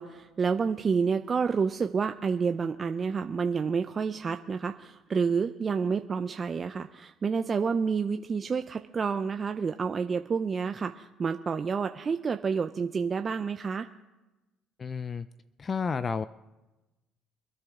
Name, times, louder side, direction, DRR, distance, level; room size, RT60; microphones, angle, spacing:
voice 1, 0.0-13.9, right 5 dB, 35° right, 8 dB, 0.6 m, -29 dB
voice 2, 14.8-15.3 15.6-16.3, left 5 dB, 35° left, 14 dB, 0.4 m, -31 dB
26.0 x 9.8 x 3.8 m, 1.1 s
supercardioid pair, 75°, 0 cm